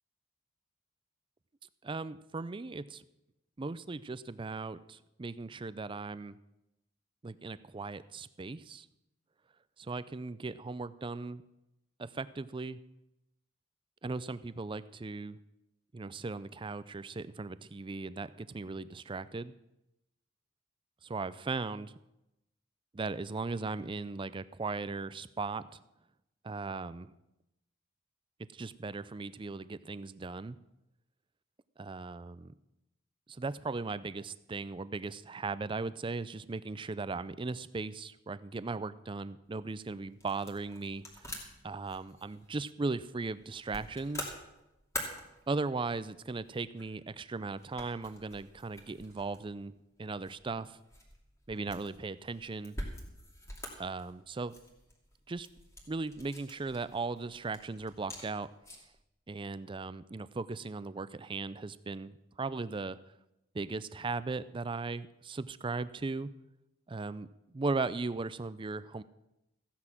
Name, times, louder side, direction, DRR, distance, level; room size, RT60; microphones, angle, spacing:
voice 1, 1.8-3.0 3.6-6.4 7.2-8.9 9.8-11.4 12.0-12.8 14.0-15.4 15.9-19.5 21.0-21.9 22.9-25.8 26.4-27.1 28.5-30.6 31.8-32.5 33.3-41.0 41.3-44.3 45.5-49.7 50.0-50.8 51.5-52.8 53.8-54.5 55.3-55.5 55.9-58.5 59.3-63.0 63.5-66.3 66.9-69.0, right 3 dB, 25° right, 16 dB, 0.4 m, -38 dB
sound 1, 39.4-59.0, equal, 15° left, 2.6 m, -47 dB
14.5 x 9.8 x 6.0 m, 0.90 s
head